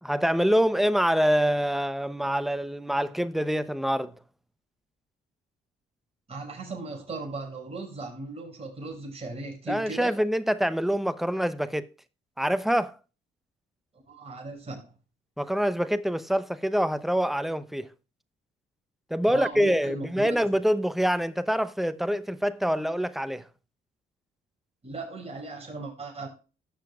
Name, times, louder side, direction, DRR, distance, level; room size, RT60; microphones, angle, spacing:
voice 1, 0.0-4.1 9.7-11.9 12.4-13.0 15.4-17.9 19.1-23.5, equal, ahead, 0.8 m, -25 dB
voice 2, 6.3-10.1 14.1-14.9 19.3-20.4 24.8-26.3, right 3 dB, 30° right, 5.8 m, -37 dB
16.5 x 6.8 x 2.4 m
cardioid pair, 90°, 20 cm